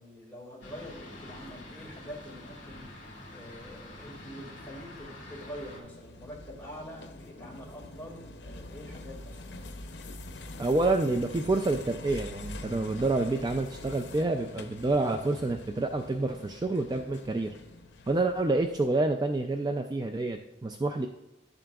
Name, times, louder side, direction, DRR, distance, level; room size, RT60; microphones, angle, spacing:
voice 1, 0.0-2.9 3.3-9.6, equal, 10° left, -3 dB, 2.0 m, -45 dB
Fixed-wing aircraft airplane, 0.6-5.8, left 1 dB, 45° left, 2.4 m, -46 dB
sound 1, 3.9-19.0, left 2 dB, 75° left, 0.6 m, -45 dB
voice 2, 10.6-17.5 18.1-21.1, right 2 dB, 20° right, 5 dB, 0.3 m, -28 dB
11.0 x 7.5 x 2.3 m, 0.96 s
head